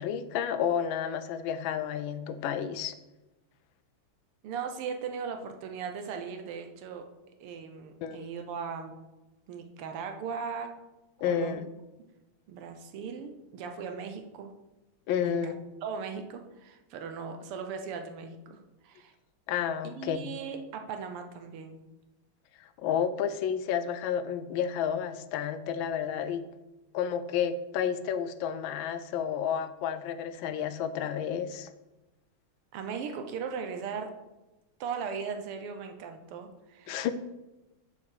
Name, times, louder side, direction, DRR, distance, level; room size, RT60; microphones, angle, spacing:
voice 1, 0.0-2.9 8.0-8.3 11.2-11.6 15.1-15.6 19.5-20.2 22.6-26.4 26.9-31.7 36.9-37.1, left 8 dB, 75° left, 12 dB, 1.3 m, -31 dB
voice 2, 4.4-7.1 7.4-9.0 9.5-10.7 11.3-11.6 12.5-14.5 15.2-18.6 18.8-19.1 19.8-21.8 32.7-34.1 34.8-37.0, right 6 dB, 85° right, 6 dB, 1.8 m, -38 dB
7.1 x 4.8 x 6.6 m, 1.0 s
omnidirectional pair, 2.4 m